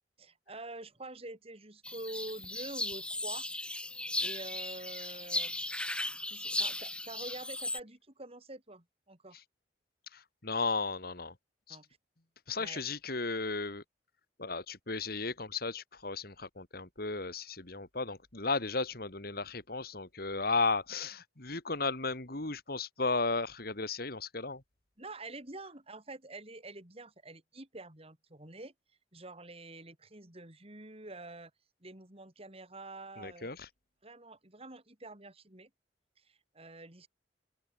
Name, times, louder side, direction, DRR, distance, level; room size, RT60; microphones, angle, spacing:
voice 1, 0.2-3.5 4.2-5.9 6.3-9.4 11.7-11.8 12.6-12.8 25.0-28.7 29.1-31.5 31.8-33.5 34.0-35.7 36.2-37.1, right 2 dB, 35° right, 4.3 m, -47 dB
sound 1, 1.8-7.8, left 1 dB, 5° left, 2.4 m, -36 dB
voice 2, 10.1-11.3 11.7-11.8 12.5-13.8 14.4-24.6 33.2-33.7, left 3 dB, 60° left, 2.9 m, -35 dB
open air
head